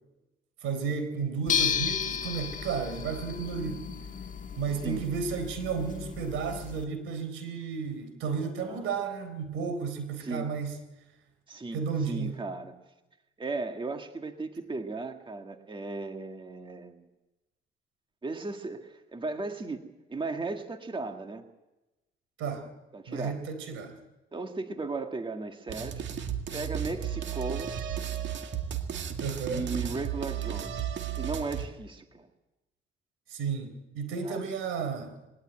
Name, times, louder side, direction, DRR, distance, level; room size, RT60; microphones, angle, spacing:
voice 1, 0.6-4.1 4.6-10.8 11.7-12.3 22.4-22.7 23.1-23.9 29.2-29.7 33.3-35.2, right 5 dB, 90° right, 8 dB, 3.9 m, -33 dB
sound 1, 1.5-6.9, left 8 dB, 40° left, 1.5 m, -33 dB
voice 2, 8.6-8.9 10.2-10.5 11.5-12.7 13.4-17.1 18.2-19.8 20.1-21.4 22.9-23.4 24.3-26.0 26.5-27.8 29.5-30.9 31.2-32.3 34.2-34.4, right 3 dB, 25° right, 5 dB, 1.9 m, -36 dB
sound 2, 25.7-31.7, right 9 dB, 65° right, 2.0 m, -34 dB
21.0 x 18.0 x 9.1 m, 1.0 s
cardioid pair, 90°, 20 cm